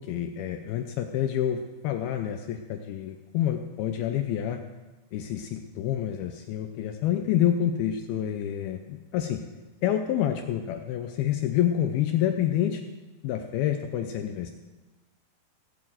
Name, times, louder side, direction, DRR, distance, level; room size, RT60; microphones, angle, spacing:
voice 1, 0.0-4.6 5.1-9.4 9.8-12.8 13.2-14.5, left 10 dB, 85° left, 6 dB, 2.2 m, -28 dB
17.0 x 7.6 x 7.8 m, 1.2 s
omnidirectional pair, 5.2 m